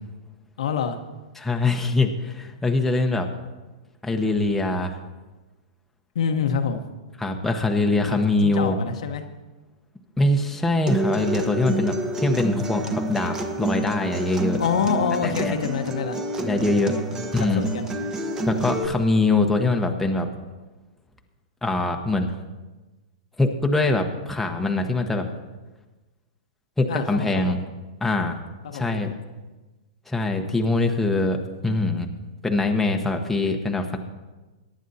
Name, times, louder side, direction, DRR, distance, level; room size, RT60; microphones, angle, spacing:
voice 1, 0.6-1.0 6.1-6.9 8.1-9.2 14.6-16.2 16.7-17.3 17.5-17.9 26.9-27.6 28.6-29.1, left 6 dB, 70° left, 5 dB, 1.2 m, -27 dB
voice 2, 1.4-3.3 4.0-5.0 7.2-8.8 10.2-14.6 15.2-15.6 16.4-17.0 17.3-17.6 18.5-20.3 21.6-22.3 23.4-25.3 26.8-27.6 28.0-28.4 28.7-29.1 30.1-31.4 31.6-32.1 32.4-34.0, left 2 dB, 5° left, 2 dB, 1.1 m, -23 dB
Acoustic guitar, 10.9-18.9, right 1 dB, 20° right, 1.3 m, -28 dB
22.5 x 10.5 x 2.8 m, 1.2 s
hypercardioid pair, 125°, 4 cm